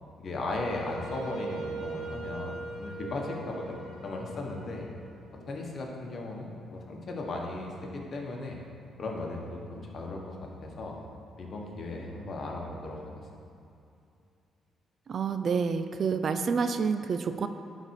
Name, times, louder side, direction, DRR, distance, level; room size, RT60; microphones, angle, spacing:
voice 1, 0.2-4.8 5.5-8.6 9.0-11.0 11.4-13.2, left 2 dB, 50° left, 0 dB, 1.4 m, -36 dB
Wind instrument woodwind instrument, 0.6-5.6, right 4 dB, 90° right, 1.4 m, -41 dB
voice 2, 15.1-17.5, right 5 dB, 50° right, 10 dB, 0.4 m, -28 dB
11.0 x 4.2 x 4.8 m, 2.6 s
cardioid pair, 90°, 0 cm